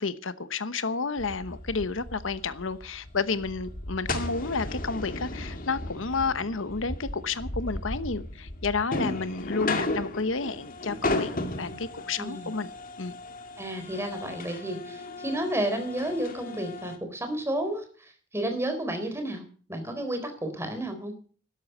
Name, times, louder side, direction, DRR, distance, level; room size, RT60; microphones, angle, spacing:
voice 1, 0.0-11.3 11.6-12.7 13.0-13.2, left 4 dB, 75° left, 1.1 m, -31 dB
sound 1, 1.2-17.0, left 2 dB, 45° left, 2.1 m, -35 dB
voice 2, 12.2-12.5 13.6-19.4 19.7-21.1, right 1 dB, 15° right, 3.9 m, -31 dB
12.5 x 11.5 x 8.0 m
head